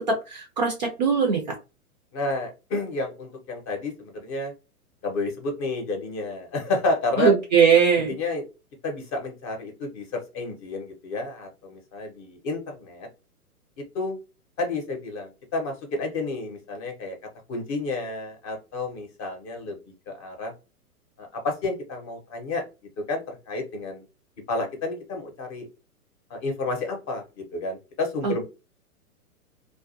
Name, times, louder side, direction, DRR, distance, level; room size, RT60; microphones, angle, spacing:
voice 1, 0.3-1.4 7.2-8.1 28.2-28.3, right 6 dB, 30° right, 2 dB, 0.4 m, -20 dB
voice 2, 2.1-4.5 5.0-7.3 8.2-8.4 8.8-13.1 13.8-14.2 14.6-17.2 17.5-19.8 20.1-20.5 21.2-22.6 23.0-24.0 24.5-25.7 26.3-28.4, left 2 dB, 25° left, 3 dB, 0.7 m, -30 dB
2.3 x 2.2 x 2.6 m, 0.29 s
hypercardioid pair, 120°, 45 cm